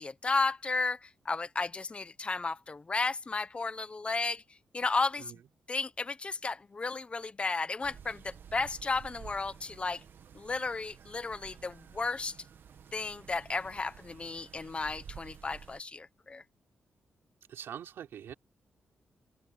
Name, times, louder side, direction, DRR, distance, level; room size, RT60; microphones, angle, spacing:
voice 1, 0.0-4.4 4.7-5.3 5.7-10.0 10.3-12.3 12.9-16.4, left 3 dB, 30° left, 1.0 m, -33 dB
sound 1, 7.8-15.8, right 7 dB, 70° right, 1.9 m, -52 dB
voice 2, 17.5-18.3, right 9 dB, 90° right, 5.1 m, -43 dB
open air
cardioid pair, 105°, 4 cm